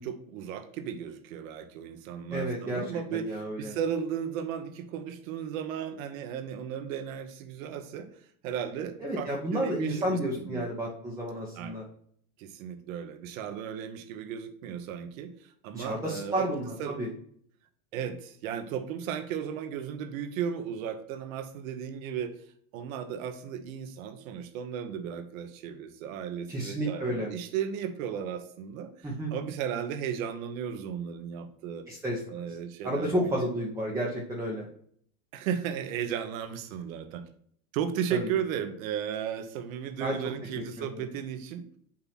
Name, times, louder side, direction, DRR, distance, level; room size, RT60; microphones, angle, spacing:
voice 1, 0.0-8.1 8.4-10.6 11.6-11.8 12.4-16.5 16.8-16.9 17.9-22.3 22.7-28.9 29.3-31.9 32.3-33.6 35.3-37.2 37.7-41.7, right 8 dB, 70° right, 9 dB, 1.2 m, -35 dB
voice 2, 2.3-2.8 3.1-3.7 9.0-11.8 15.7-17.1 26.5-27.3 29.0-29.3 31.9-32.2 32.8-34.7 38.1-38.3 40.0-40.2 40.5-40.6 40.9-41.0, right 1 dB, 5° right, -3 dB, 1.0 m, -31 dB
7.6 x 2.9 x 5.9 m, 0.62 s
supercardioid pair, 135°, 43 cm